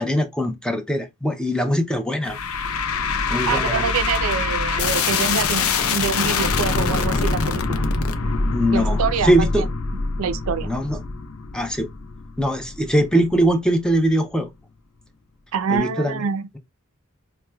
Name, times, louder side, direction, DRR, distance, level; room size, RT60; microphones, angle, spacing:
voice 1, 0.0-2.4 3.3-3.9 8.5-9.6 10.6-11.0 11.5-11.9 12.4-14.5 15.7-16.3, equal, 5° left, 0.5 m, -21 dB
sound 1, 2.2-13.5, left 4 dB, 80° left, 0.5 m, -24 dB
voice 2, 3.5-7.8 8.7-9.6 10.2-10.7 15.5-16.5, right 6 dB, 80° right, 0.4 m, -25 dB
4.5 x 2.1 x 2.2 m
head